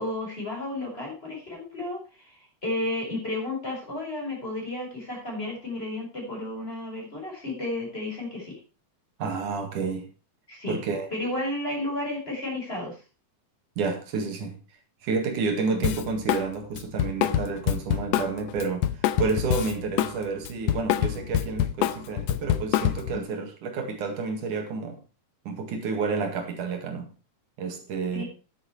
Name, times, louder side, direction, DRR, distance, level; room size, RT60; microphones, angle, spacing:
voice 1, 0.0-8.6 10.5-10.8 11.1-13.0 15.7-15.8 23.1-23.2 28.1-28.3, left 1 dB, 15° left, 5.6 m, -32 dB
voice 2, 9.2-10.1 10.7-11.1 13.8-14.6 15.0-25.0 25.5-27.1 27.6-28.2, right 4 dB, 75° right, 3.4 m, -30 dB
Drum kit, 15.8-16.5 16.8-20.2 20.4-23.2, left 11 dB, 75° left, 1.7 m, -25 dB
10.5 x 9.5 x 4.6 m
omnidirectional pair, 3.6 m